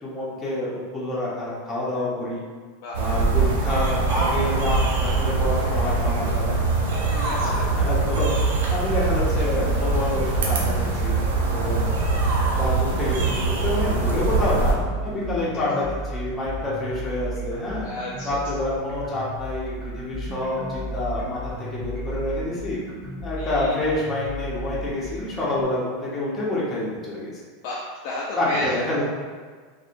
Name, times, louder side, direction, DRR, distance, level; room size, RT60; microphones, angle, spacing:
voice 1, 0.0-2.4 3.0-6.6 7.2-8.3 8.7-11.2 11.5-11.9 12.4-17.9 18.2-22.8 23.2-27.4 28.4-29.0, left 2 dB, 20° left, -6 dB, 0.8 m, -28 dB
sound 1, 2.9-14.7, right 3 dB, 80° right, 0.5 m, -23 dB
voice 2, 7.0-7.6 12.7-12.9 17.8-18.3 23.4-23.8 27.6-28.7, left 2 dB, 55° left, -4 dB, 0.3 m, -32 dB
sound 2, 8.7-25.6, right 1 dB, 25° right, 1.1 m, -34 dB
2.7 x 2.1 x 2.5 m, 1.6 s
supercardioid pair, 140°, 0 cm